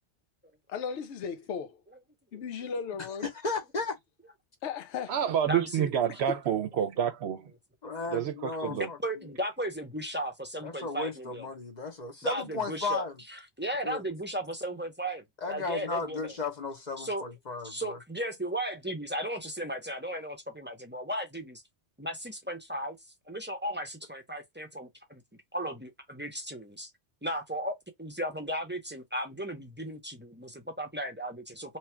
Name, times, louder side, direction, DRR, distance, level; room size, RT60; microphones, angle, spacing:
voice 1, 0.7-1.8 2.3-3.2 4.6-5.1 6.3-6.4, left 6 dB, 75° left, 0.9 m, -35 dB
voice 2, 2.3-2.7 5.5-5.9 8.6-11.5 12.2-16.3 17.0-17.2 17.6-21.6 22.0-23.0 23.3-26.9 27.2-31.8, right 1 dB, 10° right, 0.5 m, -36 dB
voice 3, 3.2-4.0 7.8-9.0 10.6-13.1 13.8-14.0 15.4-18.0, left 3 dB, 40° left, 0.9 m, -35 dB
voice 4, 5.1-7.5 8.1-8.9, right 9 dB, 70° right, 0.8 m, -28 dB
3.1 x 2.4 x 4.3 m
omnidirectional pair, 1.2 m